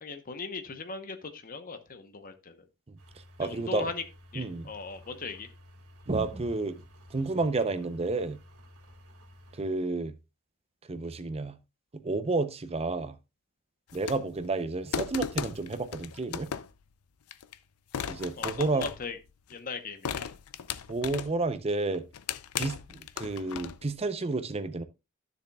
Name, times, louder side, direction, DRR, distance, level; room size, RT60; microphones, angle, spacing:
voice 1, 0.0-2.6 3.4-4.0 4.3-5.5 18.4-19.2 19.5-20.3, left 4 dB, 40° left, 0.9 m, -38 dB
sound 1, 3.0-9.6, left 1 dB, 80° right, 1.6 m, -54 dB
voice 2, 3.4-3.9 4.3-4.7 6.1-6.8 7.1-8.4 9.5-10.1 10.9-11.6 12.0-13.2 13.9-16.5 18.1-18.9 20.9-22.0 22.6-24.8, right 3 dB, 30° right, 0.6 m, -31 dB
sound 2, 13.9-14.4 14.9-16.8 17.3-17.5 17.9-19.5 20.0-21.5 21.9-23.9, left 8 dB, 80° left, 0.5 m, -36 dB
12.5 x 7.0 x 2.3 m
head